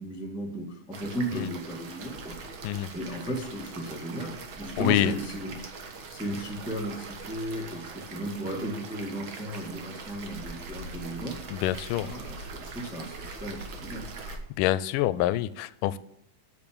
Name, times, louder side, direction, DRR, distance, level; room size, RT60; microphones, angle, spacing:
voice 1, 0.0-2.4 2.9-5.7 6.1-11.4 12.0-14.0, right 1 dB, 5° right, -1 dB, 0.7 m, -35 dB
sound 1, 0.9-14.4, right 3 dB, 55° right, 1.5 m, -42 dB
voice 2, 4.8-5.1 11.5-12.1 14.6-16.0, left 14 dB, 90° left, 17 dB, 2.2 m, -26 dB
8.6 x 6.8 x 8.6 m, 0.72 s
omnidirectional pair, 3.7 m